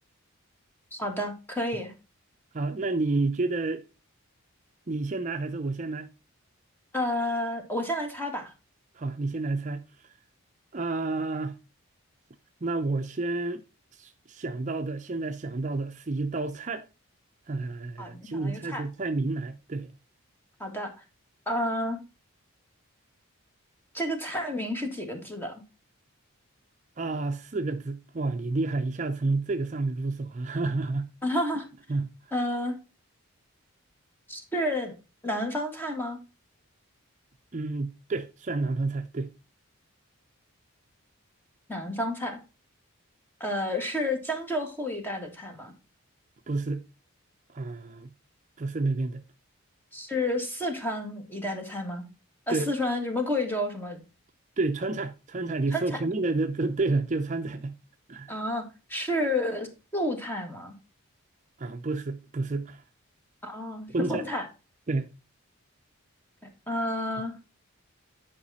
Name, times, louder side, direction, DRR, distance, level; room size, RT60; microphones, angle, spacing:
voice 1, 0.9-1.9 6.9-8.5 18.0-18.8 20.6-21.0 21.5-22.0 23.9-25.5 31.2-31.7 32.3-32.8 34.3-34.9 35.2-36.2 41.7-42.4 43.4-45.7 49.9-52.1 52.5-54.0 55.7-56.0 58.3-60.7 63.4-64.5 66.7-67.4, left 1 dB, 10° left, 1.7 m, -30 dB
voice 2, 2.5-3.8 4.9-6.1 8.9-10.1 10.7-11.6 12.6-13.6 13.9-16.8 17.5-19.9 27.0-31.1 31.9-32.3 37.5-39.3 46.5-46.8 47.5-48.1 48.6-49.2 52.5-52.7 54.6-57.8 58.1-58.3 61.6-62.8 63.9-64.3 64.9-65.1, right 3 dB, 35° right, 0.5 m, -30 dB
10.0 x 4.9 x 4.1 m
head